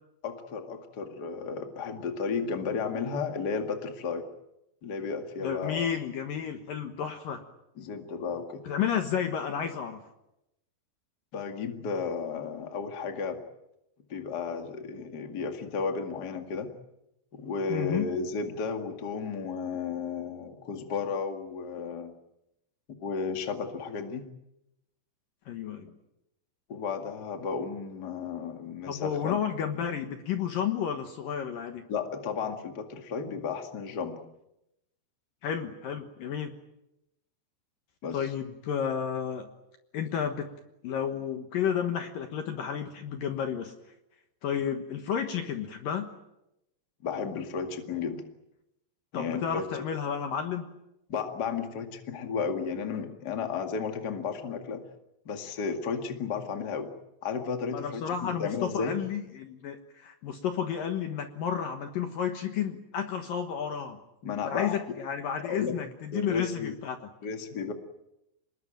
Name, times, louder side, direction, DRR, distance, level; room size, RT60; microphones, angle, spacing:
voice 1, 0.2-4.2 4.8-5.9 7.8-8.6 11.3-13.4 14.1-16.7 17.3-22.1 23.0-24.2 26.7-29.4 31.9-34.2 38.0-38.2 47.0-48.2 49.1-49.6 51.1-54.8 55.2-56.9 57.2-58.9 64.2-64.8 65.5-65.7 66.1-66.7 67.2-67.7, left 5 dB, 40° left, 5 dB, 1.5 m, -33 dB
voice 2, 5.4-7.4 8.6-10.0 17.7-18.1 25.5-25.9 28.9-31.8 35.4-36.5 38.1-39.5 39.9-40.5 40.8-43.7 44.4-46.1 49.1-50.7 57.7-64.0 64.4-67.0, left 8 dB, 65° left, 6 dB, 2.5 m, -32 dB
26.0 x 21.0 x 9.1 m, 0.88 s
omnidirectional pair, 5.1 m